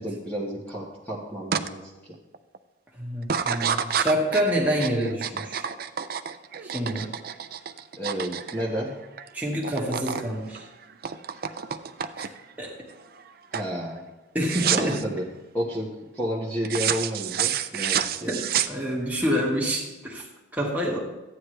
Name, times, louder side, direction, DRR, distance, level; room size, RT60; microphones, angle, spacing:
voice 1, 0.0-2.1 4.7-4.8 8.0-9.0 13.5-14.1 14.7-15.2 15.5-18.3, equal, 10° left, -6 dB, 1.5 m, -31 dB
sound 1, 1.5-1.7 2.1-2.6 3.2-9.3 9.5-10.3 10.5-12.5 13.0-13.3 13.5-13.7 14.4-15.0 16.6-19.2, right 8 dB, 50° right, 0.5 m, -29 dB
voice 2, 3.0-5.6 6.6-7.2 9.3-10.7 12.2-12.3 12.6-12.8 14.3-15.2 18.3-20.3 20.5-21.1, equal, 10° right, -3 dB, 1.9 m, -27 dB
14.0 x 9.5 x 3.3 m, 1.1 s
head